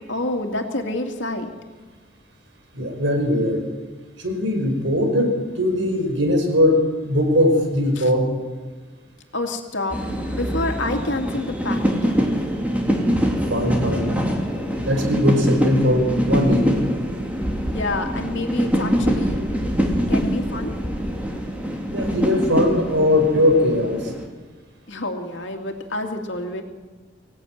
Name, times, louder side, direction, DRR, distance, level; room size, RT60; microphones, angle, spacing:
voice 1, 0.1-1.5 8.0-8.1 9.3-10.0 10.3-12.2 17.6-19.4 20.1-20.7 24.9-26.6, left 2 dB, 80° left, 3 dB, 2.6 m, -28 dB
voice 2, 2.7-3.6 4.2-8.2 13.5-14.2 14.8-16.9 21.9-24.1, left 1 dB, 80° right, 3 dB, 5.6 m, -20 dB
sound 1, 9.9-24.3, equal, 10° right, 3.0 m, -24 dB
24.5 x 16.5 x 9.4 m, 1.4 s
head